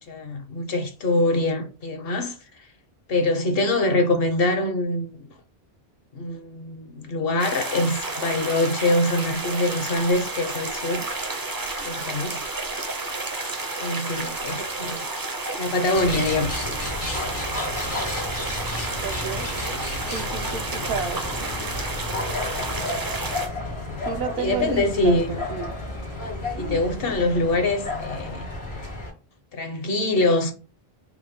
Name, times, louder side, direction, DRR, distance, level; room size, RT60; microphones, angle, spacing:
voice 1, 0.1-2.6 3.1-5.3 6.1-11.0 11.8-12.4 13.8-15.1 15.6-16.5 24.4-25.4 26.6-28.5 29.5-30.5, left 2 dB, 65° left, 1.0 m, -24 dB
sound 1, 7.4-23.5, right 2 dB, 25° right, 0.5 m, -31 dB
sound 2, 15.9-29.1, left 2 dB, 85° left, 1.9 m, -32 dB
voice 2, 19.0-19.5 20.1-21.2 24.1-25.7, right 5 dB, 70° right, 0.8 m, -31 dB
4.8 x 2.1 x 3.5 m
omnidirectional pair, 1.1 m